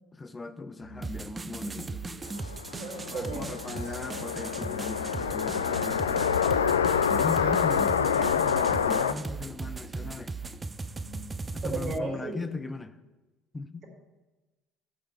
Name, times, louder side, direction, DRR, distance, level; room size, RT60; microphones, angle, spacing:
voice 1, 0.1-2.0 3.1-6.7 7.1-10.3 11.5-13.0 13.5-13.8, left 3 dB, 20° left, 11 dB, 0.9 m, -38 dB
Musical instrument, 0.8-11.6, left 1 dB, 75° left, 2.1 m, -48 dB
sound 1, 1.0-12.0, right 3 dB, 20° right, 0.5 m, -38 dB
sound 2, 2.4-9.1, left 7 dB, 90° left, 0.4 m, -27 dB
voice 2, 2.7-3.4 3.7-3.9 7.7-8.1 11.6-12.4, right 3 dB, 45° right, -2 dB, 3.7 m, -36 dB
12.0 x 5.0 x 7.5 m, 1.1 s
hypercardioid pair, 65°, 0 cm